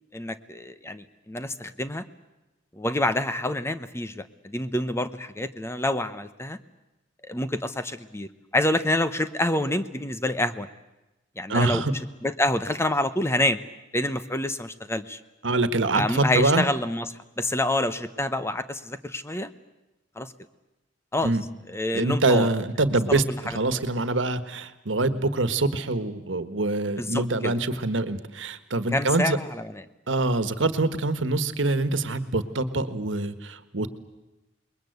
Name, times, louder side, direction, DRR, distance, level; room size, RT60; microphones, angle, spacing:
voice 1, 0.1-2.0 2.8-6.6 7.3-10.7 11.4-11.8 12.2-13.6 13.9-15.2 15.9-17.1 17.4-19.5 20.2-20.3 21.1-21.3 21.7-22.5 23.1-23.2 27.0-27.6 28.9-29.8, left 1 dB, 15° left, 11 dB, 0.9 m, -27 dB
voice 2, 11.5-11.9 15.4-16.6 21.2-21.4 21.9-23.2 23.5-29.4 30.1-33.9, right 2 dB, 85° right, 12 dB, 1.5 m, -25 dB
27.5 x 21.5 x 8.0 m, 1.0 s
head